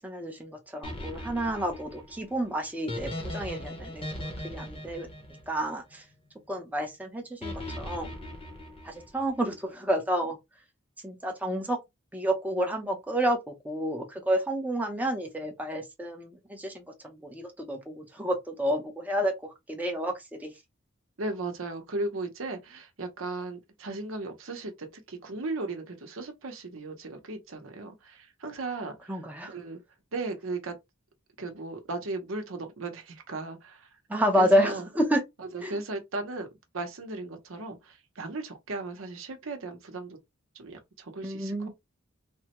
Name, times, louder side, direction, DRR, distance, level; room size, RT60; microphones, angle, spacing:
voice 1, 0.0-5.1 5.5-6.0 6.5-8.1 8.8-10.4 11.0-11.8 12.1-20.5 29.1-29.5 34.1-35.2 35.6-35.8 41.2-41.7, equal, 10° right, 0.6 m, -30 dB
sound 1, 0.8-6.1 7.4-9.3, left 1 dB, 25° left, 0.8 m, -39 dB
voice 2, 21.2-29.8 30.1-30.8 31.4-33.9 34.3-34.9 35.4-36.5 36.7-40.2 40.5-41.7, right 2 dB, 75° right, 0.8 m, -36 dB
3.4 x 2.1 x 2.9 m
head